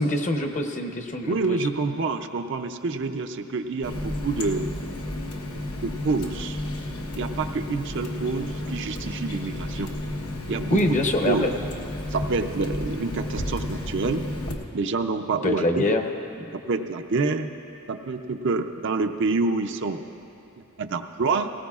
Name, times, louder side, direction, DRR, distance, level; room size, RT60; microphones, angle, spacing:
voice 1, 0.0-1.7 10.7-11.5 15.4-16.0 16.4-16.5, left 1 dB, 35° left, 4 dB, 0.7 m, -24 dB
voice 2, 1.3-4.7 5.8-6.6 7.2-9.9 10.5-10.8 11.3-11.5 12.1-14.3 14.7-15.8 16.5-17.5 17.9-20.0 20.8-21.5, right 3 dB, 55° right, 6 dB, 0.5 m, -27 dB
Water tap faucet, 3.8-14.5, left 1 dB, 80° left, 1.1 m, -32 dB
18.0 x 18.0 x 2.4 m, 2.8 s
head